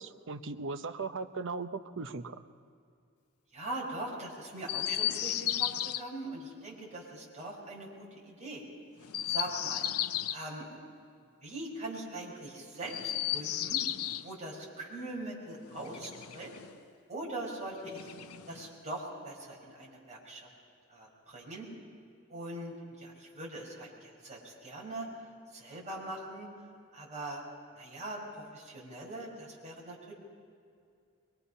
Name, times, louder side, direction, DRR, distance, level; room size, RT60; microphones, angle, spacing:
voice 1, 0.0-2.4, right 4 dB, 60° right, 9 dB, 0.9 m, -38 dB
voice 2, 3.5-8.6 9.3-9.9 10.3-10.7 11.4-13.8 14.2-16.5 17.1-18.1 18.5-20.5 20.9-21.7 22.3-25.1 25.5-26.5 26.9-27.4 27.8-30.1, right 1 dB, 35° right, -3 dB, 5.5 m, -41 dB
Chirp tweet, 4.6-6.0 9.0-10.4 12.8-14.3 15.7-16.8 17.8-18.8, left 12 dB, 80° left, 0.6 m, -34 dB
23.5 x 22.5 x 5.6 m, 2.4 s
head